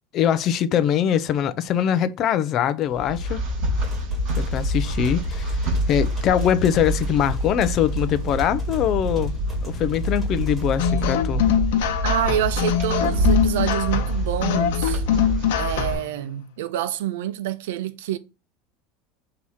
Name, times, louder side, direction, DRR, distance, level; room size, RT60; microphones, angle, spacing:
voice 1, 0.1-3.4 4.4-11.4, left 9 dB, 30° left, 0.4 m, -23 dB
sound 1, 2.9-15.9, equal, 50° right, 4.2 m, -26 dB
sound 2, 3.8-11.1, equal, 5° right, 1.8 m, -43 dB
sound 3, 10.8-16.1, left 10 dB, 70° left, 0.9 m, -23 dB
voice 2, 12.0-15.0 15.6-18.2, right 12 dB, 90° right, 0.6 m, -27 dB
6.2 x 2.8 x 5.5 m
supercardioid pair, 180°, 0 cm